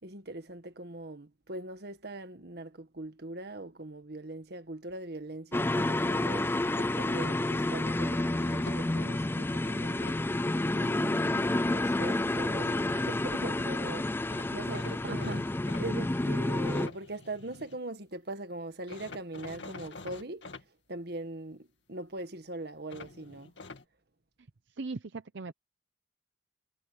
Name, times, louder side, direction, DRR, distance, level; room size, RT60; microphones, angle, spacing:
voice 1, 0.0-10.0 10.7-15.4 15.8-20.5 20.9-23.5, right 2 dB, 60° right, 1.7 m, -41 dB
sound 1, 5.5-16.9, left 2 dB, 10° left, 0.3 m, -30 dB
sound 2, 6.4-7.8 8.4-9.1 9.6-10.2 13.3-13.4 13.6-13.7 14.3-17.8 18.9-20.6 22.9-23.8, left 3 dB, 75° left, 2.2 m, -47 dB
voice 2, 15.1-15.4 24.8-25.5, right 3 dB, 75° right, 0.7 m, -39 dB
head